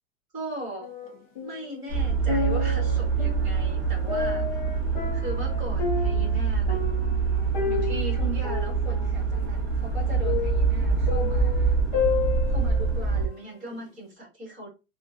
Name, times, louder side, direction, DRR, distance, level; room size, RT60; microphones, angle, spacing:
voice 1, 0.3-0.9 1.4-4.6 5.1-7.1 7.7-11.8 12.5-14.7, right 1 dB, 15° right, -3 dB, 1.5 m, -38 dB
sound 1, 0.8-1.7 2.1-13.2 13.7-13.8, left 6 dB, 35° left, 0.5 m, -32 dB
sound 2, 1.9-13.3, right 5 dB, 35° right, 1.8 m, -25 dB
3.5 x 2.2 x 2.5 m, 0.28 s
supercardioid pair, 175°, 42 cm